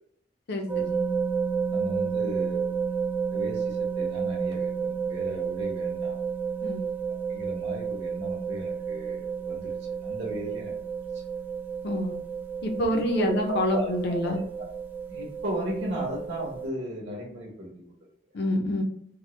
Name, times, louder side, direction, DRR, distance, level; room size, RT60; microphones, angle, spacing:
voice 1, 0.5-1.0 6.6-6.8 11.8-12.2 12.6-14.4 18.3-18.8, left 1 dB, 65° left, 3 dB, 0.6 m, -27 dB
sound 1, 0.7-16.7, right 6 dB, 10° right, 0.3 m, -31 dB
voice 2, 1.7-2.8 3.3-6.2 7.3-9.8 10.0-10.7 12.9-14.4 15.1-17.9, right 1 dB, 70° right, -2 dB, 1.0 m, -35 dB
3.5 x 2.1 x 3.1 m, 0.68 s
head